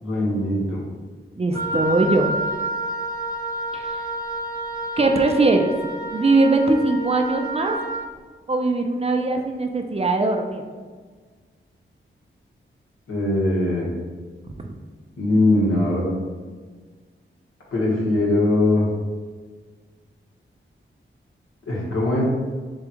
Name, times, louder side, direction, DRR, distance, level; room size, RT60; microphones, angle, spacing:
voice 1, 0.0-0.8 13.1-13.9 15.2-16.1 17.7-18.8 21.7-22.2, left 2 dB, 85° left, -5 dB, 1.4 m, -21 dB
voice 2, 1.4-2.4 3.7-4.0 5.0-5.7 6.1-7.8 8.5-10.6, right 2 dB, 30° right, 4 dB, 0.5 m, -20 dB
Wind instrument woodwind instrument, 1.5-8.1, right 1 dB, 15° left, 0.6 m, -29 dB
6.9 x 2.3 x 2.9 m, 1.5 s
wide cardioid pair, 90°, 21 cm